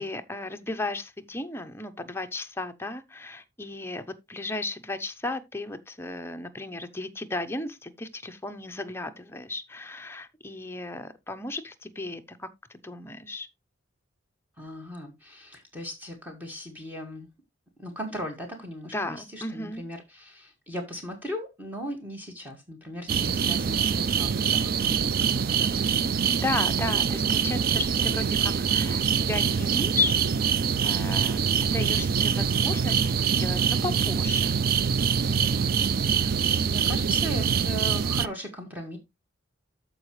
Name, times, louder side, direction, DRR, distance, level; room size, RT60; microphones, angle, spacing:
voice 1, 0.0-4.0 4.3-13.5 18.9-19.9 26.4-30.2 30.6-34.6, left 2 dB, 15° left, 0.7 m, -34 dB
voice 2, 14.6-17.3 17.8-26.0 35.2-35.6 36.2-39.0, equal, 10° right, 1.8 m, -38 dB
sound 1, 23.1-38.3, right 7 dB, 50° right, 0.4 m, -24 dB
13.5 x 4.9 x 3.1 m
head